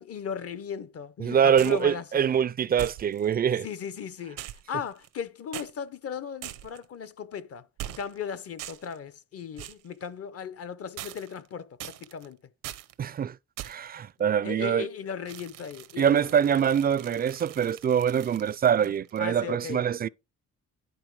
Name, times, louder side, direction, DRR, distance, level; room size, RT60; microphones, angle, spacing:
voice 1, 0.0-2.3 3.6-4.4 4.7-7.7 8.0-12.4 14.4-16.6 18.8-19.8, left 7 dB, 50° left, 0.8 m, -37 dB
voice 2, 1.2-3.7 13.0-13.4 13.6-14.9 16.0-20.1, right 8 dB, 30° right, 0.4 m, -24 dB
sound 1, 1.6-1.9 2.8-3.4 4.4-5.2 5.5-5.7 6.4-6.9 7.8-8.2 8.6-9.0 9.6-9.9 11.0-11.5 11.8-12.3 12.6-12.9 13.6-13.9 15.3-19.2, right 14 dB, 90° right, 0.8 m, -42 dB
10.5 x 3.9 x 4.7 m
cardioid pair, 90°, 30 cm